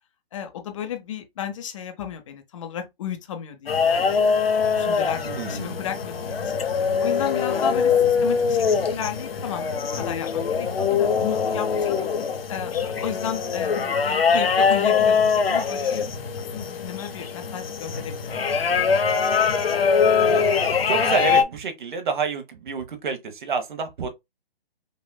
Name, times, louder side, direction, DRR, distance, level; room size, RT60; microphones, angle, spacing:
voice 1, 0.3-4.2 4.6-6.5 7.0-8.0 8.2-12.0 12.5-16.0 16.5-18.9, left 9 dB, 35° left, 0.7 m, -34 dB
sound 1, 3.7-21.4, left 6 dB, 75° left, 0.9 m, -22 dB
voice 2, 5.2-5.8 20.9-24.1, right 4 dB, 55° right, 1.1 m, -28 dB
5.3 x 2.5 x 2.2 m
hypercardioid pair, 145°, 30 cm